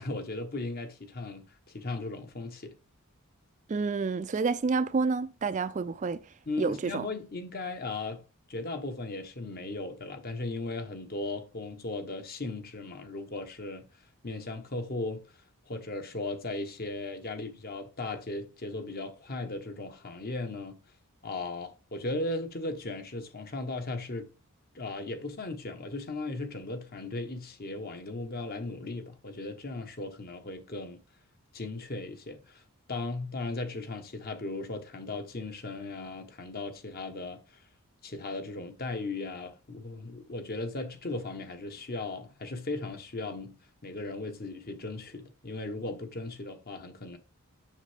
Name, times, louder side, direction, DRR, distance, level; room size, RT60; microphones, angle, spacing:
voice 1, 0.0-2.7 6.5-8.2 8.5-13.9 14.2-15.2 15.7-20.8 21.2-24.3 24.7-31.0 31.5-32.6 32.9-37.6 38.0-43.6 43.8-47.2, left 2 dB, 45° left, 1.1 m, -37 dB
voice 2, 3.7-6.2 6.6-7.1, right 4 dB, 35° right, 0.3 m, -29 dB
7.2 x 6.4 x 3.4 m
head